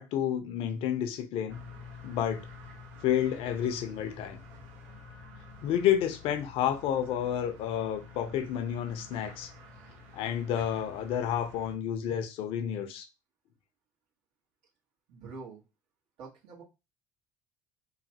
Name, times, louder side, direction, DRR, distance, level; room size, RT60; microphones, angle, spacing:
voice 1, 0.0-1.6 2.0-2.5 3.0-4.4 5.6-9.5 10.1-13.1, left 10 dB, 65° left, 0.6 m, -30 dB
sound 1, 1.5-11.7, left 3 dB, 80° right, 1.1 m, -49 dB
voice 2, 15.1-15.6 16.2-16.6, right 4 dB, 65° right, 1.4 m, -45 dB
3.1 x 2.2 x 2.8 m
supercardioid pair, 80°, 10 cm